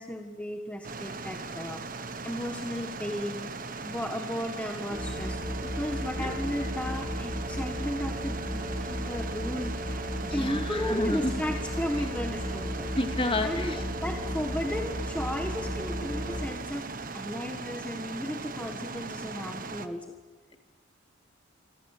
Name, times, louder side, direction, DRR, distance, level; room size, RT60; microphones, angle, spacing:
voice 1, 0.0-1.8 2.2-3.5 3.8-12.9 13.4-16.9 17.1-20.1, equal, 5° left, 4 dB, 1.4 m, -35 dB
sound 1, 0.8-19.9, right 3 dB, 45° right, 1.4 m, -39 dB
sound 2, 4.9-16.5, equal, 25° right, 6.6 m, -35 dB
voice 2, 10.2-11.3 13.0-13.8, left 2 dB, 25° left, 6 dB, 2.4 m, -30 dB
28.0 x 25.0 x 8.3 m, 1.4 s
head